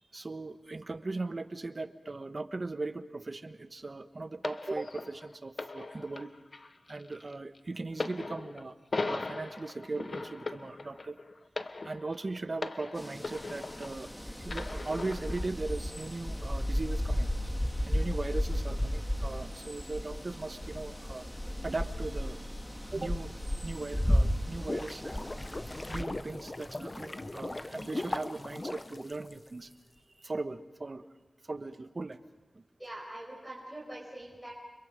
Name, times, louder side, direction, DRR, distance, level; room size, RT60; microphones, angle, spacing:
voice 1, 0.1-6.3 6.9-8.8 9.0-11.2 11.8-17.3 17.9-21.2 21.6-22.5 22.9-23.3 23.6-25.3 25.9-29.7 30.2-31.1 31.4-32.2 32.5-32.6, right 3 dB, 45° right, 9 dB, 1.2 m, -38 dB
sound 1, 4.4-14.1 14.5-15.5 16.3-16.4, left 3 dB, 55° left, 1.0 m, -39 dB
sound 2, 13.0-26.0, equal, 10° left, 1.9 m, -34 dB
sound 3, 24.3-29.7, left 2 dB, 30° left, 0.8 m, -39 dB
voice 2, 32.8-34.5, right 1 dB, 10° right, -4 dB, 5.5 m, -43 dB
30.0 x 25.5 x 5.2 m, 1.1 s
wide cardioid pair, 100°, 0 cm